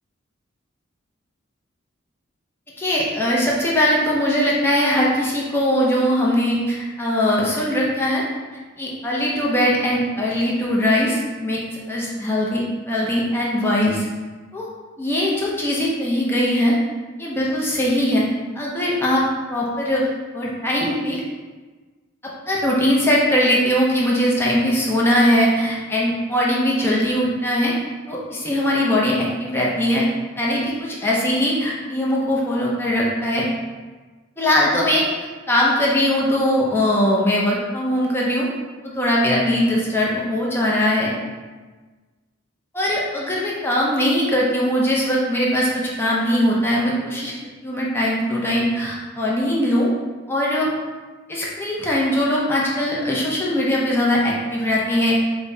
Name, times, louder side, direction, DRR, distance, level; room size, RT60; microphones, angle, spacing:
voice 1, 2.8-8.2 8.8-11.6 11.9-14.1 14.5-14.7 15.0-16.7 17.2-18.2 18.5-19.2 19.5-20.1 20.3-21.2 22.2-27.7 28.1-30.0 30.3-33.5 34.4-35.0 35.5-38.5 38.8-41.1 42.7-47.3 47.6-49.9 50.3-50.7 51.3-55.2, left 1 dB, 10° left, -4 dB, 0.5 m, -20 dB
5.1 x 2.1 x 2.6 m, 1.3 s
head